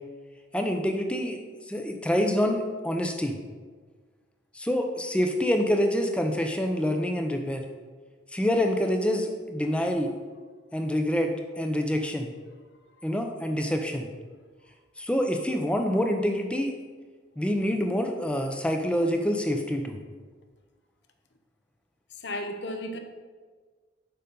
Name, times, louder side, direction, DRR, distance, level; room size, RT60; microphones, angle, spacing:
voice 1, 0.5-1.4 1.7-3.4 4.5-7.6 8.3-10.1 10.7-11.3 11.6-12.3 13.0-14.1 15.0-16.7 17.4-20.0, equal, 5° left, 4 dB, 0.6 m, -26 dB
voice 2, 22.2-23.0, left 1 dB, 65° left, 6 dB, 0.8 m, -34 dB
6.8 x 5.2 x 5.2 m, 1.5 s
head